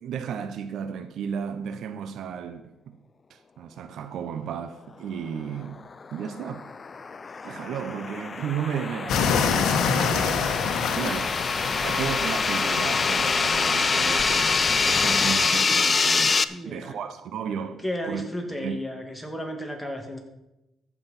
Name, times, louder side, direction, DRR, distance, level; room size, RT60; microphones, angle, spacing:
voice 1, 0.0-2.9 3.3-5.8 6.1-6.7 7.4-10.5 10.9-11.4 11.8-18.2 18.6-18.8, right 7 dB, 75° right, 0.8 m, -34 dB
sound 1, 6.0-16.4, left 4 dB, 35° left, 0.5 m, -25 dB
sound 2, 9.1-15.3, left 6 dB, 75° left, 1.3 m, -27 dB
voice 2, 10.9-11.3 11.7-12.0 16.5-17.0 17.8-20.2, equal, 5° left, 2.4 m, -34 dB
14.5 x 6.1 x 5.9 m
cardioid pair, 90°, 0 cm